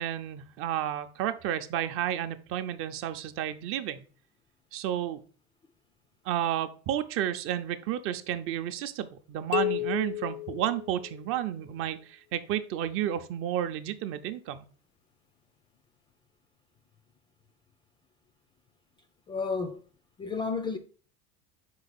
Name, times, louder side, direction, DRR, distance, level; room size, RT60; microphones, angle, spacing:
voice 1, 0.0-4.0 4.7-5.2 6.2-14.7, right 11 dB, 45° right, 0.6 m, -31 dB
sound 1, 9.5-11.5, left 18 dB, 80° left, 0.4 m, -32 dB
voice 2, 19.3-19.8 20.2-20.8, left 4 dB, 15° left, 0.3 m, -31 dB
5.3 x 4.8 x 4.1 m
cardioid pair, 145°, 30 cm